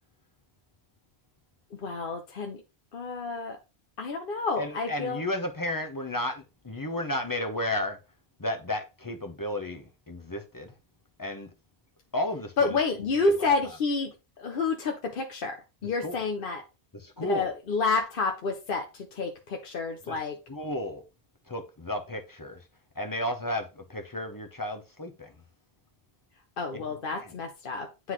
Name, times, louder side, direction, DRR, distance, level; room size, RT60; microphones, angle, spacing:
voice 1, 1.8-2.6 2.9-3.6 4.0-5.2 12.6-16.6 17.2-20.4 26.6-28.1, left 4 dB, 60° left, 0.9 m, -29 dB
voice 2, 4.6-8.0 8.4-10.7 11.2-11.5 12.1-12.8 13.4-13.5 16.0-16.2 16.9-17.5 20.1-20.2 20.5-21.0 21.5-22.6 23.0-25.3 26.7-26.8 27.1-27.3, left 1 dB, 20° left, 0.8 m, -33 dB
9.5 x 3.9 x 3.1 m
omnidirectional pair, 1.1 m